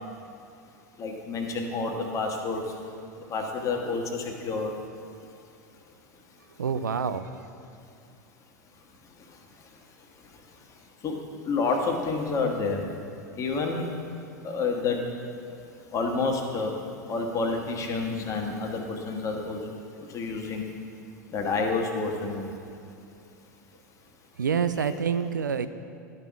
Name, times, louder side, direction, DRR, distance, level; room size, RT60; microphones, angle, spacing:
voice 1, 1.0-2.8 3.2-4.8 9.2-9.4 10.2-10.3 11.0-11.1 11.4-12.9 13.3-14.0 14.4-15.0 15.9-16.8 17.1-20.7 21.3-22.6, left 4 dB, 35° left, 2 dB, 1.3 m, -29 dB
voice 2, 6.5-7.5 24.3-25.7, right 6 dB, 85° right, 11 dB, 0.4 m, -27 dB
12.0 x 5.5 x 4.7 m, 2.5 s
figure-of-eight pair, 85°, 10 cm